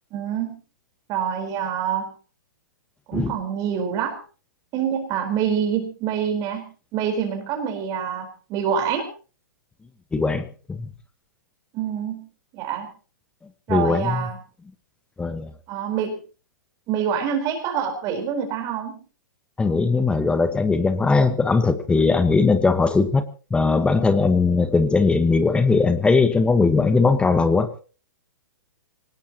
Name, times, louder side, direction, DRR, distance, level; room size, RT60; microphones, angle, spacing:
voice 1, 0.1-0.6 1.1-2.1 3.1-4.2 4.7-6.6 6.9-9.1 11.7-12.2 12.5-12.9 13.7-14.4 15.7-16.2 16.9-19.0, right 8 dB, 35° right, 5 dB, 4.3 m, -26 dB
voice 2, 10.1-10.9 13.7-14.3 15.2-15.5 19.6-23.2 23.5-27.7, left 4 dB, 10° left, 11 dB, 1.3 m, -19 dB
24.0 x 19.0 x 3.0 m, 0.37 s
figure-of-eight pair, 115°, 11 cm